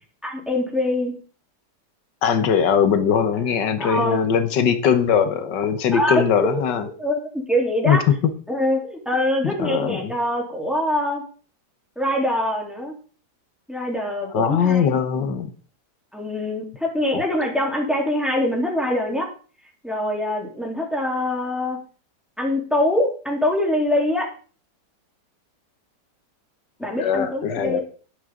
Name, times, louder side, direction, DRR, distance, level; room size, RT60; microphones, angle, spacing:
voice 1, 0.2-1.1 3.8-4.2 5.9-6.7 7.0-8.0 8.5-11.2 11.9-13.0 13.7-15.3 16.1-19.3 19.8-21.8 22.4-24.3 26.8-27.8, left 1 dB, ahead, -1 dB, 3.2 m, -24 dB
voice 2, 2.2-6.9 7.9-8.1 9.4-10.1 14.3-15.5 27.0-27.8, left 7 dB, 85° left, 9 dB, 1.7 m, -20 dB
11.0 x 11.0 x 3.7 m, 0.40 s
omnidirectional pair, 1.8 m